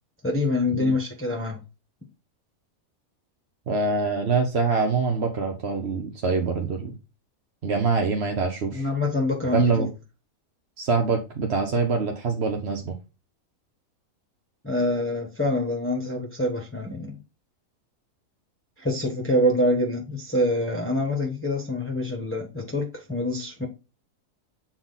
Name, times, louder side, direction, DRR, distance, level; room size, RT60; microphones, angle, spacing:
voice 1, 0.2-1.6 8.7-9.7 14.6-17.2 18.8-23.7, left 1 dB, 10° left, 1.2 m, -25 dB
voice 2, 3.7-6.9 7.6-8.8 9.5-9.9 10.8-13.0, right 4 dB, 50° right, 1.2 m, -24 dB
7.5 x 4.2 x 4.0 m
omnidirectional pair, 1.5 m